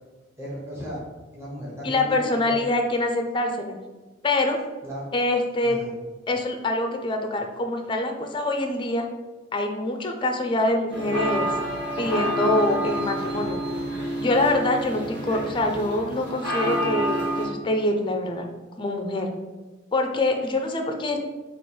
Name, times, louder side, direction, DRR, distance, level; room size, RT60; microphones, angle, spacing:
voice 1, 0.4-1.0 1.3-2.6 4.8-5.0 5.6-5.9, equal, 15° right, -7 dB, 1.0 m, -35 dB
voice 2, 1.8-3.8 4.2-4.6 5.1-5.8 6.3-9.1 9.5-11.5 12.0-13.6 14.2-18.5 18.8-19.3 19.9-21.2, left 2 dB, 25° left, 4 dB, 0.4 m, -25 dB
sound 1, 10.9-17.4, equal, 65° right, 1.4 m, -28 dB
3.2 x 2.9 x 4.3 m, 1.2 s
head